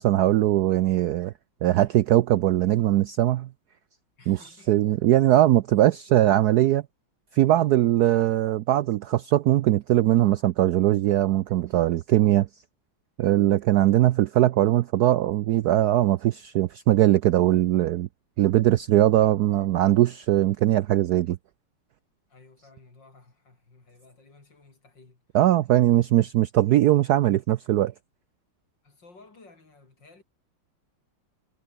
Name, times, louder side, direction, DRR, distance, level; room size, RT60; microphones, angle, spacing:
voice 1, 0.0-1.3 1.6-3.5 4.3-6.8 7.3-12.5 13.2-18.1 18.4-21.4 25.3-27.9, right 14 dB, 90° right, 0.8 m, -21 dB
voice 2, 4.2-4.7 22.3-25.2 28.8-30.2, left 3 dB, 55° left, 5.5 m, -54 dB
omnidirectional pair, 2.3 m